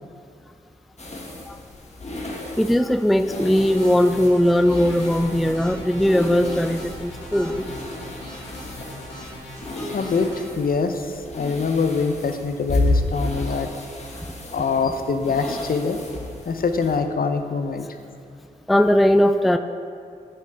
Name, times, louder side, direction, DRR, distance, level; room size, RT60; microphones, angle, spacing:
sound 1, 1.0-17.0, left 2 dB, 40° left, 1.5 m, -32 dB
voice 1, 2.6-7.6 18.7-19.6, equal, ahead, 9 dB, 0.3 m, -19 dB
sound 2, 3.3-10.4, equal, 90° left, 1.6 m, -39 dB
voice 2, 9.9-13.7 14.5-16.0 16.5-17.9, left 4 dB, 55° left, 7 dB, 0.7 m, -24 dB
9.0 x 6.4 x 3.5 m, 2.4 s
supercardioid pair, 40°, 18 cm